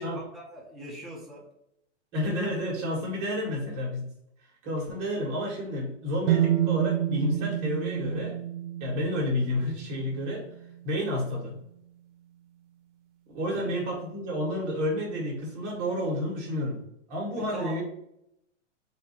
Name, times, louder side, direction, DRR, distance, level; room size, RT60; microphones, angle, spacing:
voice 1, 0.0-1.4 13.5-13.7 17.4-17.8, right 1 dB, ahead, -5 dB, 0.5 m, -41 dB
voice 2, 2.1-4.0 4.6-8.4 8.8-10.4 10.8-11.5 13.3-16.8 17.1-17.8, left 1 dB, 30° right, -2 dB, 1.6 m, -30 dB
sound 1, 6.3-10.2, right 12 dB, 75° right, 0.7 m, -28 dB
4.2 x 2.6 x 4.3 m, 0.77 s
hypercardioid pair, 150°, 36 cm